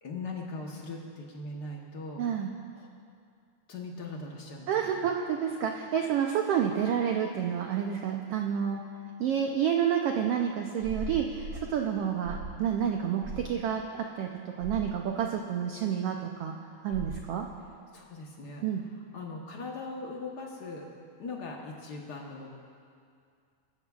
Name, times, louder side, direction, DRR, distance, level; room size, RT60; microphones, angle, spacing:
voice 1, 0.0-2.2 2.7-2.9 3.7-5.0 17.9-18.6 19.1-20.9 21.2-22.5, left 3 dB, 80° left, -1 dB, 0.9 m, -40 dB
voice 2, 2.2-2.5 4.7-8.8 9.2-14.3 14.6-16.5 16.8-17.5 18.6-18.8, right 8 dB, 90° right, 2 dB, 1.3 m, -29 dB
sound 1, 10.8-11.7 12.2-12.6 13.2-13.5 14.6-14.9 16.9-17.3, right 2 dB, 70° right, 1.1 m, -39 dB
23.5 x 14.0 x 2.4 m, 2.3 s
omnidirectional pair, 3.5 m